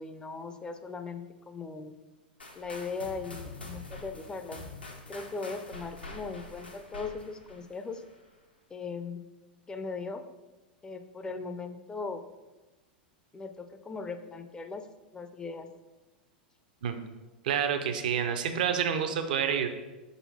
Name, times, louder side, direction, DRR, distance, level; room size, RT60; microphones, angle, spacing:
voice 1, 0.0-2.0 2.6-4.6 5.1-8.0 8.7-9.2 9.7-10.3 10.8-12.3 13.3-14.9 15.1-15.7, left 4 dB, 15° left, 8 dB, 0.5 m, -39 dB
sound 1, 2.4-8.2, left 2 dB, 85° left, 1.2 m, -45 dB
voice 2, 17.4-19.7, right 8 dB, 60° right, 7 dB, 0.7 m, -28 dB
5.7 x 4.1 x 5.4 m, 1.1 s
figure-of-eight pair, 90°, 5 cm